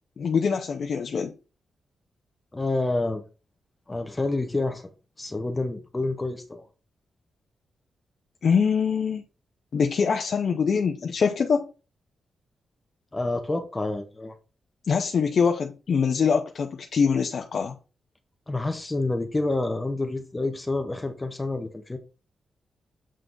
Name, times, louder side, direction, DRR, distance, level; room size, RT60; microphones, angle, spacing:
voice 1, 0.2-1.3 8.4-9.2 9.7-11.6 14.9-17.8, left 6 dB, 55° left, 0.6 m, -24 dB
voice 2, 2.5-3.2 3.9-4.8 5.2-6.6 13.1-14.3 18.5-22.0, left 2 dB, 15° left, 0.8 m, -28 dB
7.6 x 3.4 x 3.8 m
wide cardioid pair, 135°, 0 cm